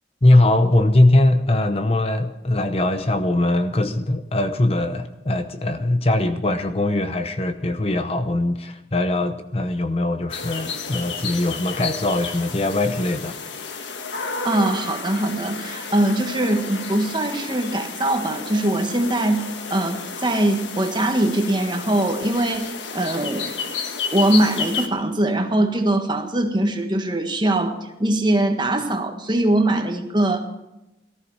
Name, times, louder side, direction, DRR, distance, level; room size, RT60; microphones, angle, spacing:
voice 1, 0.2-13.3, left 1 dB, 35° left, 9 dB, 0.8 m, -21 dB
sound 1, 10.3-24.9, left 5 dB, 85° left, 1.5 m, -32 dB
voice 2, 14.4-23.5 24.1-30.4, right 1 dB, 25° right, 5 dB, 1.5 m, -22 dB
18.5 x 14.5 x 4.8 m, 0.93 s
head